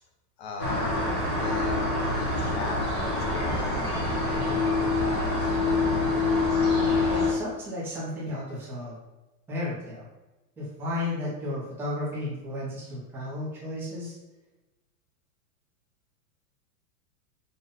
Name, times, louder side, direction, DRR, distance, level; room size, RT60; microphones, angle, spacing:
voice 1, 0.4-1.8 2.0-3.7 4.3-5.5 8.3-8.4, left 3 dB, 40° left, 3 dB, 0.8 m, -39 dB
sound 1, 0.6-7.3, left 3 dB, 20° left, 0.4 m, -25 dB
voice 2, 7.0-8.9 9.5-10.1 10.6-14.2, left 1 dB, 5° right, -9 dB, 0.8 m, -33 dB
5.5 x 2.5 x 3.9 m, 1.1 s
supercardioid pair, 170°, 49 cm